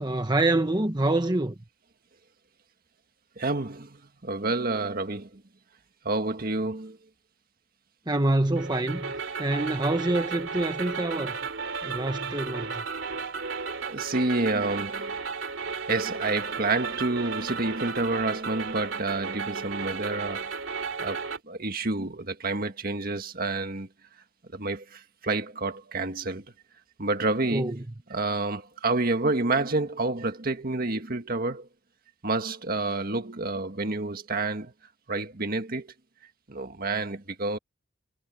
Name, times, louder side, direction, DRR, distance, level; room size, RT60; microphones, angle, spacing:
voice 1, 0.0-1.6 8.1-9.1 9.4-11.4 11.8-12.8 27.5-27.8, right 2 dB, 20° right, 1.2 m, -26 dB
voice 2, 3.4-5.4 6.0-7.0 13.5-15.1 15.9-20.5 21.0-21.2 21.4-23.9 24.5-26.5 27.0-27.8 28.1-31.7 32.2-34.7 35.1-35.9 36.5-37.6, right 2 dB, 45° right, 1.8 m, -29 dB
sound 1, 8.6-21.4, right 5 dB, 65° right, 3.5 m, -34 dB
head